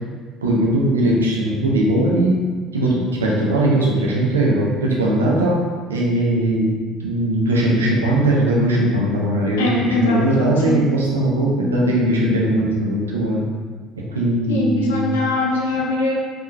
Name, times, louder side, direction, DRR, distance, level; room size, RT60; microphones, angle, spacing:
voice 1, 0.4-2.4 2.7-5.6 5.9-6.8 7.0-13.4 13.9-15.1, right 1 dB, 85° right, -3 dB, 0.6 m, -19 dB
voice 2, 9.6-10.8 14.5-16.1, left 2 dB, 80° left, -2 dB, 0.6 m, -21 dB
3.6 x 3.3 x 2.7 m, 1.5 s
figure-of-eight pair, 60°, 0 cm